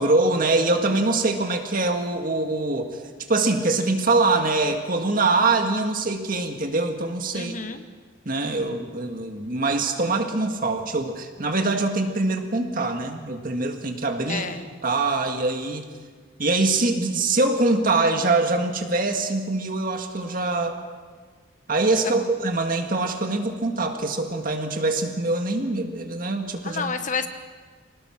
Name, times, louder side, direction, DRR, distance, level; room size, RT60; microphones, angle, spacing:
voice 1, 0.0-3.0 3.3-7.5 8.3-14.5 14.8-15.8 16.4-20.8 21.7-26.9, right 2 dB, 45° right, 5 dB, 1.9 m, -23 dB
voice 2, 7.3-7.8 14.3-14.7 22.0-22.2 26.6-27.3, left 5 dB, 40° left, 9 dB, 1.1 m, -30 dB
25.0 x 19.0 x 6.0 m, 1.5 s
head